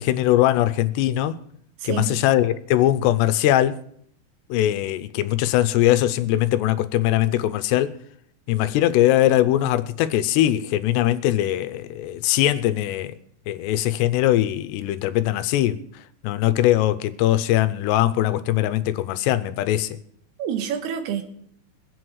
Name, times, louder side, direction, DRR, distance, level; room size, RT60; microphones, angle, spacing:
voice 1, 0.0-1.4 1.8-3.8 4.5-7.9 8.5-13.1 13.5-15.8 16.2-20.0, left 13 dB, 85° left, 2.8 m, -21 dB
voice 2, 1.8-2.2 20.4-21.2, right 9 dB, 70° right, 3.1 m, -27 dB
23.0 x 7.9 x 4.7 m
omnidirectional pair, 4.9 m